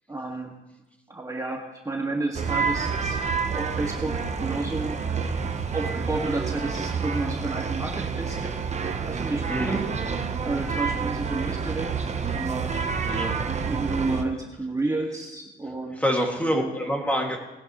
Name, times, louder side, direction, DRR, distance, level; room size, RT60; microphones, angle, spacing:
voice 1, 0.1-0.5 1.1-5.0 5.7-8.6 9.1-9.9 10.4-11.9 12.3-12.7 13.7-16.0 16.5-16.7, right 2 dB, 15° right, -1 dB, 2.0 m, -31 dB
sound 1, 2.3-14.2, right 5 dB, 35° right, 1.0 m, -28 dB
voice 2, 9.5-9.8 13.0-13.4 15.9-17.4, equal, 5° left, 0 dB, 2.3 m, -26 dB
19.5 x 10.5 x 3.2 m, 1.0 s
cardioid pair, 90°, 20 cm